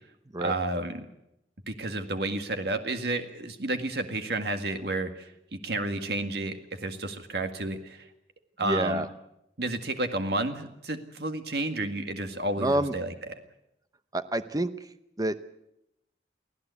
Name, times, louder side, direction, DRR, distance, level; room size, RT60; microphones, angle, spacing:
voice 1, 0.4-1.0 1.7-8.1 8.6-9.1 9.6-13.1, right 2 dB, 65° right, 7 dB, 1.9 m, -31 dB
voice 2, 8.6-9.1 12.6-12.9 14.1-14.9 15.2-15.4, right 1 dB, 20° right, 11 dB, 0.8 m, -28 dB
24.0 x 15.5 x 8.3 m, 0.84 s
head